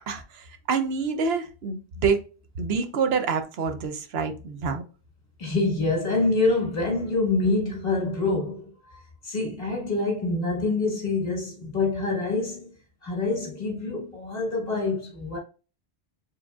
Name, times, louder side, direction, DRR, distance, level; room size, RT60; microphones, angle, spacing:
voice 1, 0.1-2.2 2.6-4.8, right 5 dB, 70° right, 0.9 m, -27 dB
voice 2, 5.4-12.7 13.0-15.4, left 3 dB, 60° left, 2.1 m, -26 dB
4.8 x 3.7 x 2.3 m
omnidirectional pair, 1.1 m